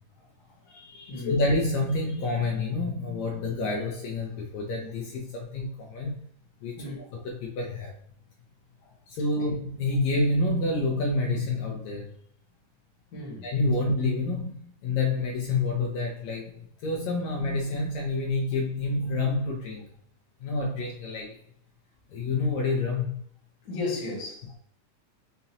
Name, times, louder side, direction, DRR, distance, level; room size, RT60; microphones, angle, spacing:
voice 1, 0.2-0.8 1.1-1.4 6.8-7.2 8.8-8.9 13.1-13.5 13.8-13.9 23.6-24.5, left 3 dB, 40° left, 1.7 m, -36 dB
voice 2, 0.7-6.2 6.6-7.0 7.3-7.9 9.1-12.1 13.4-16.5 16.8-19.9 20.4-21.4 22.1-23.2, left 2 dB, 75° left, 1.9 m, -28 dB
5.6 x 2.7 x 2.8 m
omnidirectional pair, 3.4 m